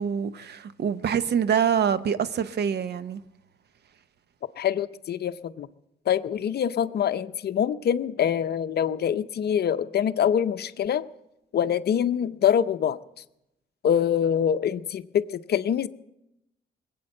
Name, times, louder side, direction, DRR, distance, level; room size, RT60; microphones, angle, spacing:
voice 1, 0.0-3.2, right 8 dB, 55° right, 0.8 m, -25 dB
voice 2, 4.6-5.7 6.1-11.0 11.5-13.0 13.8-15.9, left 9 dB, 55° left, 0.6 m, -25 dB
20.0 x 8.6 x 7.6 m
cardioid pair, 90°, 20 cm